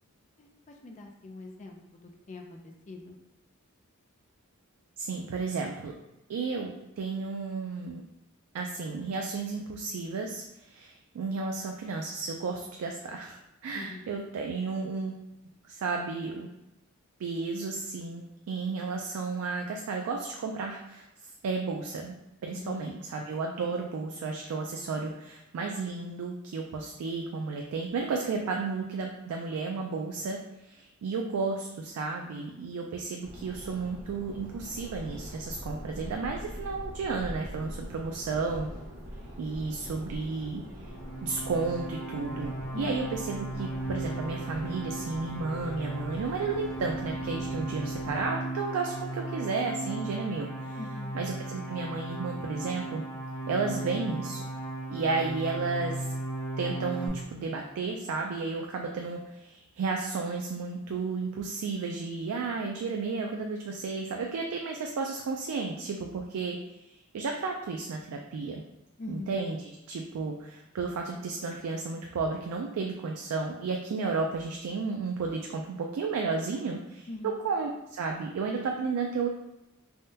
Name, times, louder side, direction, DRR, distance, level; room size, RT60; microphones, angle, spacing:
voice 1, 0.8-2.4 2.9-3.2 13.7-14.1 22.5-22.9 42.7-43.0 50.8-51.1 69.0-69.3 77.1-77.4, left 2 dB, 35° left, 2 dB, 0.4 m, -42 dB
voice 2, 5.0-5.9 6.3-8.0 8.5-15.2 15.7-16.5 17.2-21.0 21.4-22.1 22.4-38.7 39.4-40.6 41.2-50.8 51.1-53.0 53.5-54.4 54.9-56.0 56.6-66.6 66.9-68.6 69.1-77.1 77.4-79.3, right 4 dB, 85° right, 1 dB, 0.3 m, -33 dB
Subway metro underground, 33.2-48.3, equal, 35° right, 1.1 m, -44 dB
sound 1, 40.8-57.1, right 2 dB, 65° left, 1.0 m, -36 dB
3.5 x 2.2 x 2.7 m, 0.94 s
head